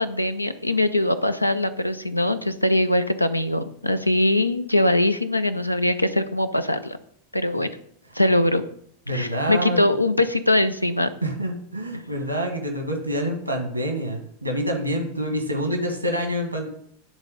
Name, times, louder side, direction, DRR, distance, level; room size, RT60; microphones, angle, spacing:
voice 1, 0.0-7.0 7.3-7.7 8.1-8.6 9.1-11.1, left 1 dB, 85° left, 11 dB, 0.5 m, -22 dB
voice 2, 9.1-9.8 11.2-16.7, equal, 85° right, 3 dB, 1.5 m, -27 dB
9.8 x 3.7 x 5.1 m, 0.65 s
figure-of-eight pair, 90°, 0 cm